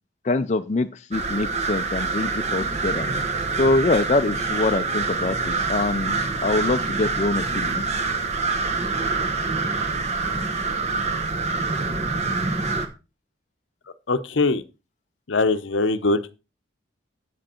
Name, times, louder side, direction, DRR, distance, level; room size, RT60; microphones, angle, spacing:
voice 1, 0.2-3.1 3.6-7.8, left 2 dB, 35° left, 0.5 m, -24 dB
sound 1, 1.1-12.9, right 4 dB, 35° right, 1.1 m, -26 dB
voice 2, 14.1-14.6 15.3-16.2, left 3 dB, 70° left, 0.7 m, -21 dB
8.2 x 7.7 x 4.4 m
head